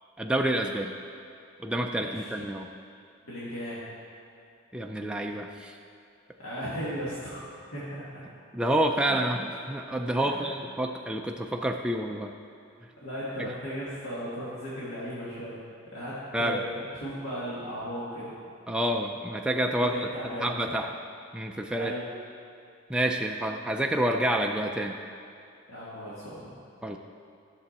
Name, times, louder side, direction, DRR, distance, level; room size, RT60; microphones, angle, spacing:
voice 1, 0.2-1.0 1.6-2.7 4.7-5.8 8.5-12.3 13.4-13.5 16.3-16.6 18.7-20.1 20.4-20.9 21.3-21.9 22.9-25.0 26.8-27.0, right 1 dB, 5° right, 2 dB, 0.3 m, -28 dB
voice 2, 1.9-2.3 3.3-3.8 6.4-7.5 7.7-8.2 9.1-9.2 10.2-10.5 13.0-15.6 15.9-18.3 19.8-20.6 21.8-22.1 25.7-26.5, equal, 75° left, -9 dB, 1.9 m, -36 dB
11.5 x 6.9 x 4.2 m, 2.5 s
head